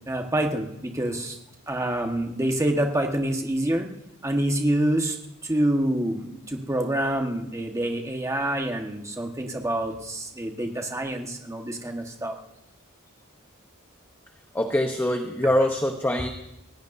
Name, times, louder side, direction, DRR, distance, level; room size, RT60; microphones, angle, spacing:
voice 1, 0.1-1.4 1.7-3.9 4.2-5.2 5.4-12.4, right 1 dB, 15° right, 3 dB, 1.4 m, -26 dB
voice 2, 14.5-16.3, left 1 dB, 10° left, 4 dB, 0.9 m, -23 dB
28.5 x 16.5 x 2.7 m, 0.85 s
head